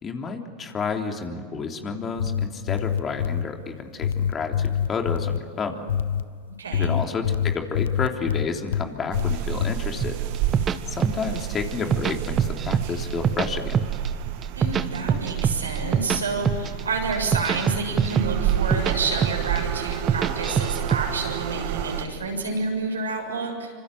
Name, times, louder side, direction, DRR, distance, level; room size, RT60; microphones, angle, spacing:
voice 1, 0.0-5.8 6.7-10.2 10.9-13.8, left 5 dB, 30° left, 3 dB, 3.4 m, -30 dB
sound 1, 2.0-3.5 4.0-5.4 5.9-6.3 6.7-8.9 9.1-9.8, left 8 dB, 75° left, 0.9 m, -25 dB
voice 2, 6.6-6.9 14.6-23.7, right 3 dB, 90° right, 1 dB, 7.0 m, -29 dB
sound 2, 9.1-22.1, right 10 dB, 60° right, 2.1 m, -30 dB
sound 3, 10.0-11.4 11.7-12.8 13.1-14.1 14.4-16.2 16.4-16.8 17.1-18.9 19.2-19.6 19.9-21.0, right 7 dB, 30° right, 1.3 m, -23 dB
26.5 x 26.0 x 7.8 m, 2.2 s
hypercardioid pair, 90°, 0 cm